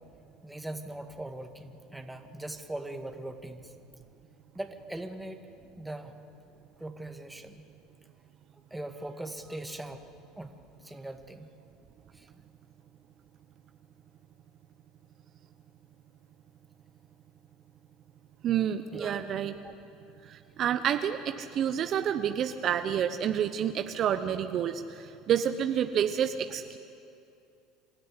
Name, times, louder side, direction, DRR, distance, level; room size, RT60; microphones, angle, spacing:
voice 1, 0.4-3.8 4.5-5.5 5.8-6.2 6.8-7.7 8.7-10.0 10.4-11.5 12.1-12.3 18.9-19.3 19.6-19.7, right 1 dB, 5° right, 5 dB, 2.1 m, -40 dB
voice 2, 18.4-19.5 20.3-26.8, right 9 dB, 50° right, 9 dB, 0.9 m, -29 dB
27.0 x 13.5 x 9.8 m, 2.6 s
hypercardioid pair, 85°, 0 cm